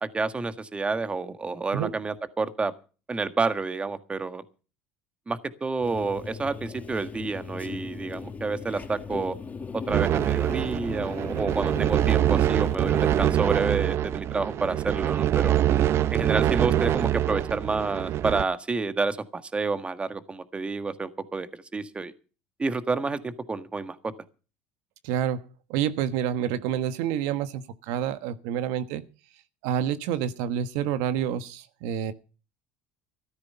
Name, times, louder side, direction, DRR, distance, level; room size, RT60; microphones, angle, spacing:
voice 1, 0.0-2.7 3.1-4.4 5.3-9.3 9.7-15.6 16.1-22.1 22.6-24.0, right 4 dB, 20° right, 11 dB, 1.6 m, -29 dB
sound 1, 5.8-13.4, left 5 dB, 25° left, 4.7 m, -38 dB
sound 2, 9.9-18.4, right 11 dB, 45° right, 0.7 m, -24 dB
voice 2, 25.0-25.4 25.7-29.0 29.6-32.1, right 9 dB, 75° right, 12 dB, 1.2 m, -28 dB
14.0 x 13.0 x 5.6 m, 0.35 s
supercardioid pair, 100°, 6 cm